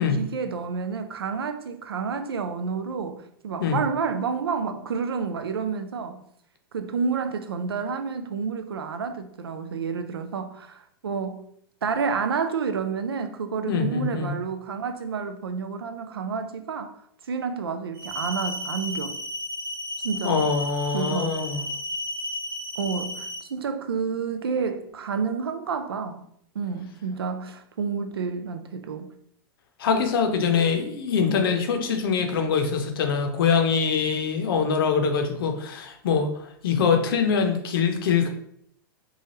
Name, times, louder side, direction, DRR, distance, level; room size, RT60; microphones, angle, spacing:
voice 1, 0.0-6.2 6.7-11.4 11.8-17.0 17.3-19.2 20.0-20.5 20.9-21.3 22.8-26.3 26.5-29.1, right 5 dB, 90° right, 0.4 m, -29 dB
voice 2, 13.7-14.3 20.2-21.6 29.8-38.3, left 6 dB, 70° left, 0.6 m, -23 dB
sound 1, 17.9-23.4, left 1 dB, 50° right, 1.0 m, -33 dB
3.1 x 2.3 x 2.8 m
hypercardioid pair, 105°, 12 cm